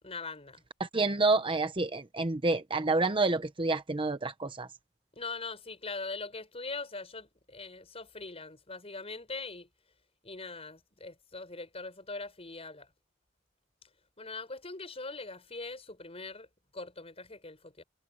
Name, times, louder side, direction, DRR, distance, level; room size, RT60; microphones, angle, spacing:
voice 1, 0.0-0.6 5.1-9.7 10.2-12.9 13.8-13.9 14.2-16.5 16.7-17.8, left 3 dB, 30° left, 5.8 m, -42 dB
voice 2, 0.8-4.7, right 3 dB, 25° right, 0.9 m, -28 dB
head